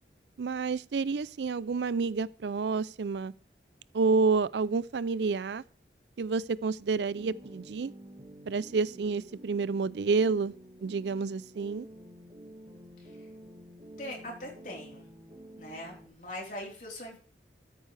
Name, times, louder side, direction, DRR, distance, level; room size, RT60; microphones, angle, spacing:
voice 1, 0.4-3.3 3.9-5.6 6.2-7.9 8.5-10.5 10.8-11.9, right 4 dB, 80° right, 0.4 m, -29 dB
sound 1, 7.1-16.1, equal, 30° right, 1.7 m, -50 dB
voice 2, 14.0-15.1 15.6-17.2, left 1 dB, 45° left, 4.0 m, -41 dB
13.5 x 9.2 x 3.4 m
head